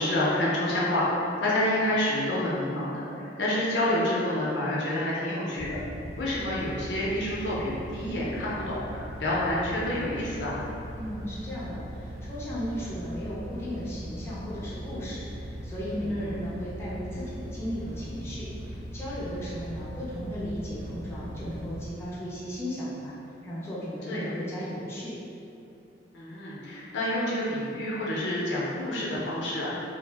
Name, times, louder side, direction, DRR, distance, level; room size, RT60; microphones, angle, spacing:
voice 1, 0.0-5.8 6.2-10.6 16.1-16.4 24.1-24.3 26.1-29.7, left 1 dB, 70° left, -6 dB, 0.6 m, -28 dB
sound 1, 5.5-21.9, equal, 35° right, 0.7 m, -40 dB
voice 2, 11.0-11.8 12.2-23.2 23.4-25.1, equal, 15° left, -9 dB, 0.5 m, -35 dB
2.4 x 2.0 x 3.3 m, 2.7 s
head